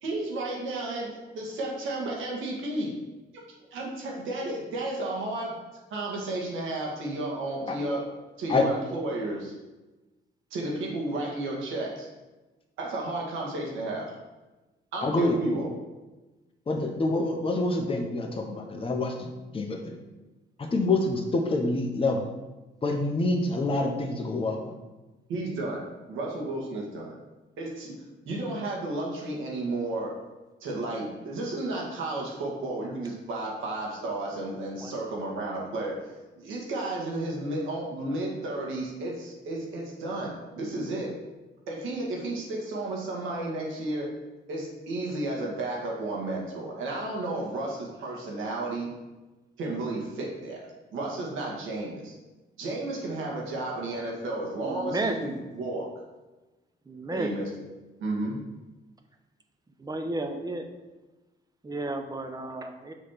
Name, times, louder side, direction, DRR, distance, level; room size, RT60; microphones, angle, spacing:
voice 1, 0.0-2.9 3.3-3.4 3.7-5.6 5.9-8.0 8.4-9.5 10.5-12.1 12.8-14.1 14.9-15.7 25.3-25.8 26.1-27.2 27.6-28.0 28.3-30.1 30.6-36.0 36.4-41.1 41.7-44.1 44.5-48.9 49.6-50.6 50.9-52.1 52.6-55.9 57.1-57.5 58.0-58.4, right 2 dB, 85° right, -2 dB, 1.9 m, -32 dB
voice 2, 15.0-15.6 16.7-19.3 19.5-20.0 20.6-22.2 22.8-24.7, left 2 dB, 25° left, 2 dB, 1.0 m, -27 dB
voice 3, 54.6-55.2 56.9-57.3 59.8-60.6 61.6-62.9, right 2 dB, 20° right, 5 dB, 0.8 m, -32 dB
6.3 x 3.3 x 5.8 m, 1.1 s
cardioid pair, 90°, 20 cm